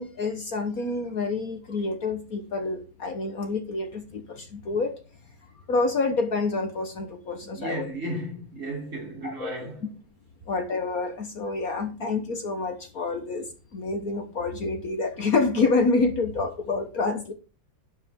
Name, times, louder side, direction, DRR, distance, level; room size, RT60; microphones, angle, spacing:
voice 1, 0.0-4.9 5.7-7.8 9.2-9.5 10.5-17.3, left 3 dB, 50° left, 1.6 m, -27 dB
voice 2, 7.4-9.9, right 1 dB, 40° right, 3.9 m, -34 dB
11.5 x 8.4 x 3.7 m
omnidirectional pair, 2.0 m